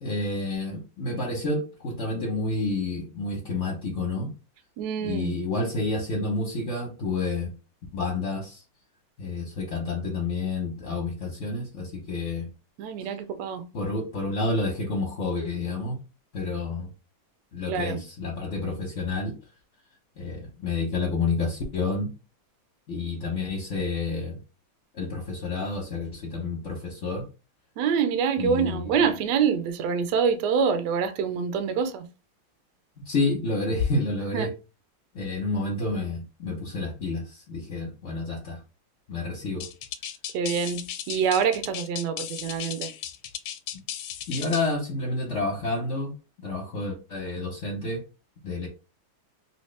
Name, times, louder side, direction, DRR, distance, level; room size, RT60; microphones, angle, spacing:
voice 1, 0.0-4.3 5.0-7.5 7.9-8.6 9.2-12.5 13.7-16.0 16.3-16.9 17.5-19.4 20.2-22.1 22.9-24.4 24.9-27.3 28.4-28.9 33.0-34.5 35.1-38.6 39.1-39.7 44.3-46.1 46.4-48.0 48.4-48.7, left 3 dB, 55° left, 0.8 m, -29 dB
voice 2, 4.8-5.3 12.8-13.6 17.7-18.0 27.8-32.1 34.3-34.5 40.3-42.9, right 6 dB, 75° right, 1.0 m, -26 dB
sound 1, 39.6-44.7, left 10 dB, 90° left, 1.4 m, -36 dB
3.1 x 2.8 x 3.2 m
omnidirectional pair, 2.2 m